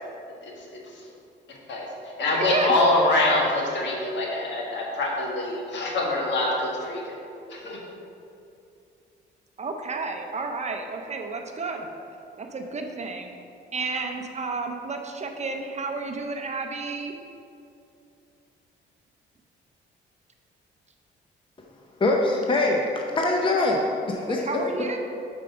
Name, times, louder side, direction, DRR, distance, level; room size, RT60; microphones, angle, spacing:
voice 1, 0.4-1.0 1.7-7.0 7.5-7.8, left 2 dB, 65° left, -2 dB, 1.6 m, -25 dB
voice 2, 2.3-2.7 9.6-11.9 12.4-13.3 13.7-17.1 24.3-25.0, right 3 dB, 35° right, 4 dB, 0.6 m, -31 dB
voice 3, 22.0-23.8 24.1-24.5, left 2 dB, 25° left, 0 dB, 0.6 m, -23 dB
5.2 x 4.7 x 5.8 m, 2.6 s
cardioid pair, 90°, 20 cm